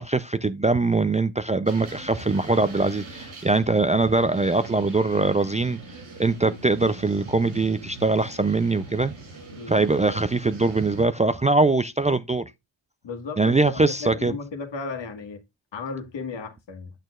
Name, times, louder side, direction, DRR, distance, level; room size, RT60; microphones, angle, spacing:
voice 1, 0.0-5.8 6.2-9.1 9.7-12.4 13.4-14.3, right 3 dB, 15° right, 0.4 m, -22 dB
sound 1, 1.7-11.0, right 2 dB, 85° right, 5.5 m, -42 dB
voice 2, 9.5-9.9 13.0-15.4 15.7-16.9, left 4 dB, 65° left, 1.6 m, -35 dB
9.0 x 6.1 x 2.4 m
cardioid pair, 65°, 46 cm